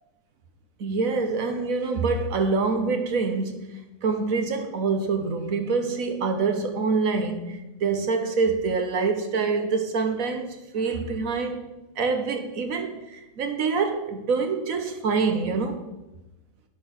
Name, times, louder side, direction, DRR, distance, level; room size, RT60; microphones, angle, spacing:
voice 1, 0.8-11.6 12.0-15.8, right 4 dB, 80° right, 1.5 m, -26 dB
9.3 x 5.9 x 5.9 m
omnidirectional pair, 1.4 m